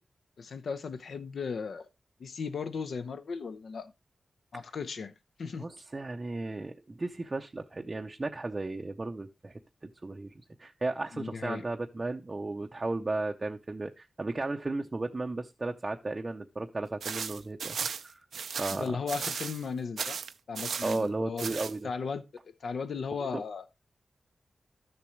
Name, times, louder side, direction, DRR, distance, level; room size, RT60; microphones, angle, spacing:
voice 1, 0.4-1.9 2.2-3.9 4.5-5.1 5.4-5.7 11.1-11.7 18.7-20.2 20.5-21.5 21.8-22.2 22.6-23.7, left 5 dB, 70° left, 0.6 m, -36 dB
voice 2, 5.6-9.5 9.8-10.3 10.6-17.8 18.0-18.2 18.6-19.0 20.8-21.9 23.3-23.4, right 2 dB, 25° right, 0.6 m, -34 dB
sound 1, 17.0-19.7 20.0-21.0 21.4-21.7, right 6 dB, 90° right, 0.5 m, -36 dB
12.5 x 6.9 x 3.1 m
wide cardioid pair, 165°, 0 cm